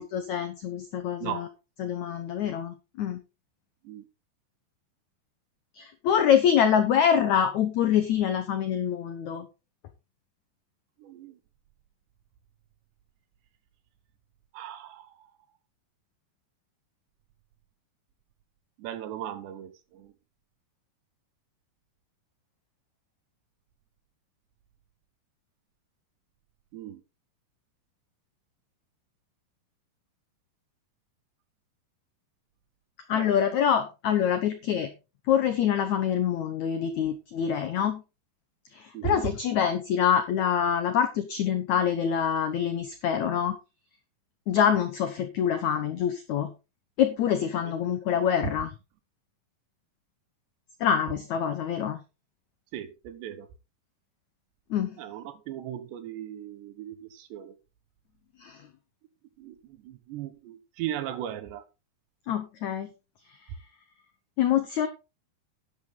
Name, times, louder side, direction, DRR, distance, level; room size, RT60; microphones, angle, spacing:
voice 1, 0.0-1.5 1.8-3.2 5.8-9.5 33.1-34.9 35.3-38.0 38.7-43.6 44.5-46.5 47.0-48.7 50.8-52.0 54.7-54.9 58.4-58.6 62.3-62.9 64.4-64.9, left 8 dB, 80° left, 1.6 m, -25 dB
voice 2, 11.0-11.4 14.5-15.1 18.8-20.1 26.7-27.0 33.1-33.3 38.9-39.3 52.7-53.5 55.0-57.6 59.4-59.6 59.8-61.6, right 11 dB, 85° right, 3.5 m, -37 dB
11.0 x 10.0 x 3.9 m
omnidirectional pair, 4.8 m